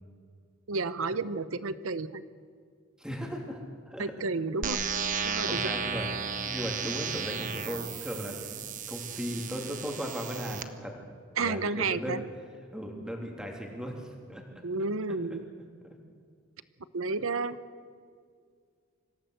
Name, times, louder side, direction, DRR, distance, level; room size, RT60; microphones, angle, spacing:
voice 1, 0.7-2.2 4.0-4.8 5.2-5.7 11.4-12.2 14.6-15.4 16.9-17.6, right 3 dB, 75° right, 15 dB, 0.8 m, -31 dB
voice 2, 3.0-3.6 3.9-4.1 5.4-6.1 6.5-11.0 11.3-12.2 12.7-14.6 15.1-15.2, equal, 5° right, 1 dB, 3.1 m, -37 dB
sound 1, 4.6-10.6, right 6 dB, 40° right, 1.2 m, -34 dB
25.5 x 16.5 x 8.0 m, 2.1 s
head